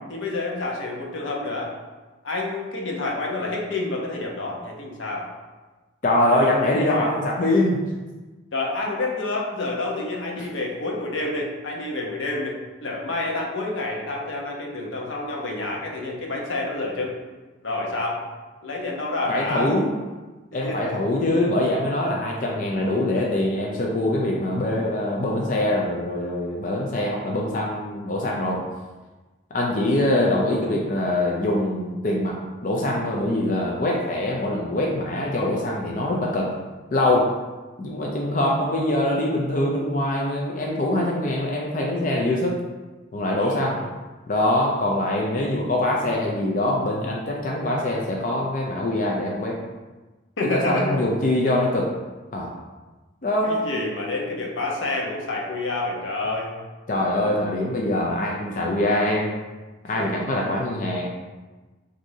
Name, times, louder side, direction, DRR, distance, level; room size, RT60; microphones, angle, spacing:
voice 1, 0.1-1.7 2.2-5.3 6.3-7.2 8.5-17.2 17.6-18.2 18.6-19.7 20.5-21.0 43.4-43.9 50.4-51.0 53.4-56.5 60.0-60.3, left 2 dB, 85° left, -1 dB, 0.8 m, -28 dB
voice 2, 6.0-7.9 10.4-10.5 19.3-19.9 20.5-28.6 29.5-36.5 36.9-37.3 37.8-42.6 43.1-43.8 44.3-49.6 50.4-51.9 52.3-52.5 53.2-53.6 56.9-59.3 59.8-61.1, left 1 dB, 40° left, -2 dB, 0.5 m, -23 dB
6.1 x 2.7 x 2.7 m, 1.2 s
head